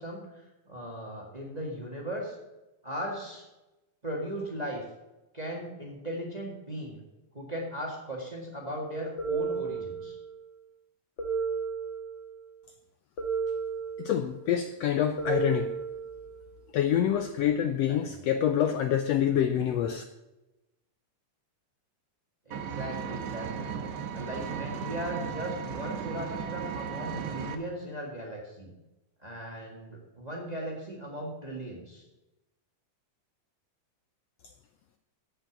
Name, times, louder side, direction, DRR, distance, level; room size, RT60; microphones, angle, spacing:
voice 1, 0.0-2.3 2.8-3.5 4.0-4.9 5.3-7.0 7.3-10.2 17.9-18.2 22.4-23.7 24.1-28.7 29.2-32.0, equal, 20° right, -1 dB, 1.4 m, -38 dB
sound 1, 9.2-10.4 11.2-12.4 13.2-14.3 15.2-16.4, right 5 dB, 45° left, 2.1 m, -33 dB
voice 2, 14.0-15.7 16.7-20.0, left 9 dB, 85° left, 8 dB, 1.4 m, -26 dB
Engine, 22.5-27.5, right 7 dB, 65° right, 2.1 m, -35 dB
8.7 x 8.0 x 7.3 m, 1.0 s
omnidirectional pair, 3.5 m